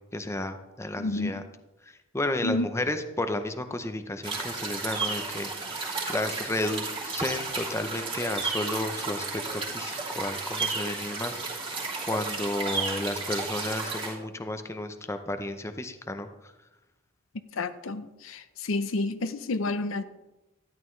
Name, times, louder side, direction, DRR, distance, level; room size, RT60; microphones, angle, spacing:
voice 1, 0.0-1.4 2.1-11.8 12.1-16.3, left 1 dB, 15° left, 8 dB, 0.6 m, -32 dB
voice 2, 1.0-1.3 2.4-2.7 17.6-20.0, left 2 dB, 75° left, 12 dB, 0.7 m, -30 dB
sound 1, 4.2-14.1, right 3 dB, 25° right, 3.1 m, -33 dB
12.5 x 11.0 x 3.2 m, 0.98 s
head